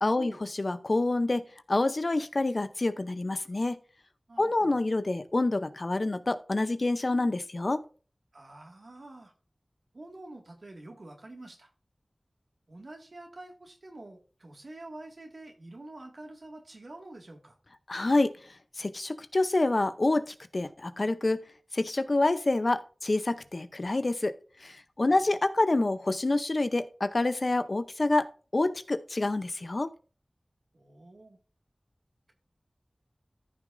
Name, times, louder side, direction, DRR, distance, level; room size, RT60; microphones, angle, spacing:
voice 1, 0.0-3.8 4.4-7.8 17.9-18.4 18.8-21.4 21.7-24.3 24.6-28.3 28.5-29.9, left 2 dB, 60° left, 0.7 m, -27 dB
voice 2, 4.3-4.8 8.3-9.3 9.9-11.7 12.7-17.6 25.1-25.3 30.7-31.4, right 2 dB, 75° right, 1.9 m, -47 dB
14.5 x 6.2 x 2.6 m
wide cardioid pair, 45°, 0 cm